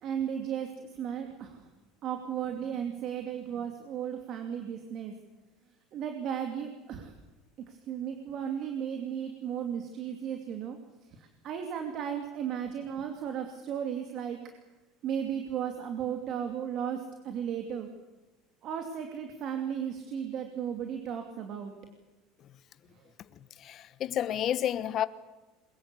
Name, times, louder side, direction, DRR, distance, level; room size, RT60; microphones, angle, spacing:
voice 1, 0.0-1.6 2.0-5.1 5.9-7.1 7.7-10.8 11.2-14.4 15.0-17.9 18.6-21.7, right 8 dB, 45° right, 2.6 m, -35 dB
voice 2, 23.6-25.1, left 10 dB, 40° left, 1.0 m, -30 dB
23.0 x 21.5 x 8.4 m
cardioid pair, 145°, 0 cm